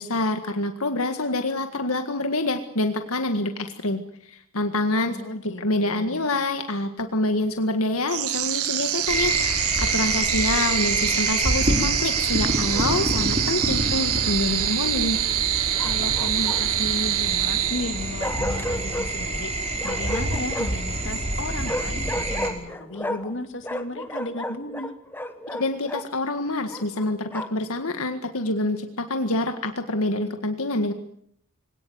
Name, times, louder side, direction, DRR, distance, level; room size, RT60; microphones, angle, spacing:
voice 1, 0.0-5.2 5.6-15.2 25.5-30.9, left 2 dB, 75° left, 7 dB, 1.8 m, -26 dB
voice 2, 5.0-6.3 15.8-19.5 19.8-24.9, left 2 dB, 55° left, 7 dB, 2.5 m, -34 dB
sound 1, 8.1-18.3, right 12 dB, 85° right, 1.6 m, -25 dB
sound 2, 9.1-22.5, right 1 dB, 30° right, 5.3 m, -27 dB
Bark, 12.7-13.3 15.8-16.9 18.2-19.1 19.8-20.9 21.6-23.4 23.6-26.1 26.7-27.7, left 1 dB, 10° left, 1.3 m, -33 dB
25.0 x 18.5 x 9.5 m, 0.70 s
head